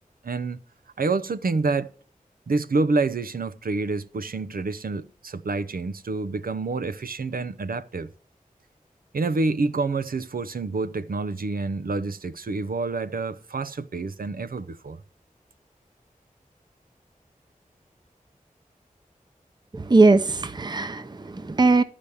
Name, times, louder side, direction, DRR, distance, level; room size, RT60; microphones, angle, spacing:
voice 1, 0.2-0.6 1.0-1.9 2.5-8.1 9.1-15.0, right 3 dB, 85° right, 0.7 m, -27 dB
voice 2, 19.7-21.8, right 3 dB, 30° right, 0.7 m, -20 dB
12.0 x 5.1 x 7.0 m
wide cardioid pair, 55°, 14 cm